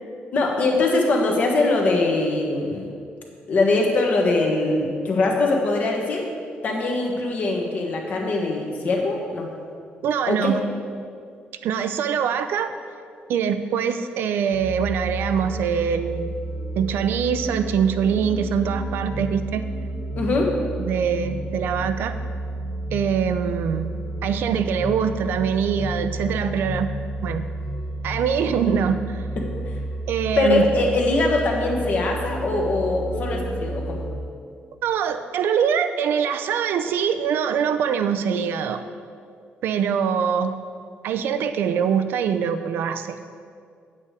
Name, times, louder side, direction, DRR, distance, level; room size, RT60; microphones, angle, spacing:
voice 1, 0.3-2.9 3.5-6.3 6.6-9.5 10.3-10.5 20.2-20.5 29.4-29.5 30.4-34.0, left 2 dB, 45° left, 0 dB, 1.4 m, -22 dB
voice 2, 10.0-10.6 11.6-12.7 13.3-16.3 16.8-19.7 20.9-22.1 22.9-23.9 24.2-26.9 27.2-27.4 28.0-29.2 30.1-30.7 34.8-38.8 39.6-40.6 41.0-43.2, right 7 dB, 80° right, 10 dB, 0.5 m, -23 dB
sound 1, 14.5-34.2, right 1 dB, 80° left, 2.5 m, -31 dB
8.4 x 8.2 x 4.8 m, 2.2 s
cardioid pair, 170°, 4 cm